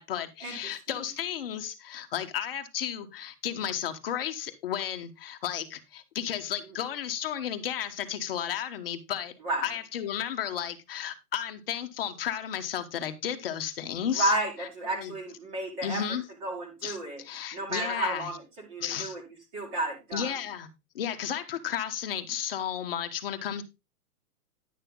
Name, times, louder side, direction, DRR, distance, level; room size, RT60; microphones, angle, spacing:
voice 1, 0.0-9.3 9.6-14.3 14.6-15.1 15.8-16.2 16.8-18.4 18.8-19.1 20.1-20.7 20.9-23.6, left 9 dB, 35° left, 1.2 m, -33 dB
voice 2, 14.2-16.0 16.4-17.2 17.5-18.4 18.7-19.2 19.5-20.3, right 2 dB, 25° right, 2.2 m, -31 dB
10.5 x 6.6 x 3.7 m
hypercardioid pair, 175°, 47 cm